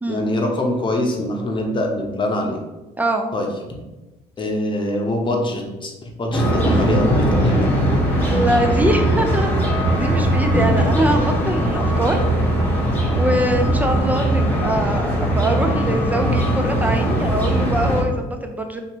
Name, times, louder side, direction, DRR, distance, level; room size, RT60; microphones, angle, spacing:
voice 1, 0.1-2.6 3.3-3.5 4.4-7.7, left 1 dB, 30° left, 1 dB, 0.8 m, -24 dB
voice 2, 3.0-3.3 8.1-9.5 10.0-12.2 12.7-18.8, right 1 dB, 10° right, 4 dB, 0.4 m, -23 dB
sound 1, 6.3-18.0, right 1 dB, 10° left, 1.0 m, -19 dB
2.9 x 2.9 x 4.4 m, 1.1 s
cardioid pair, 110°, 17 cm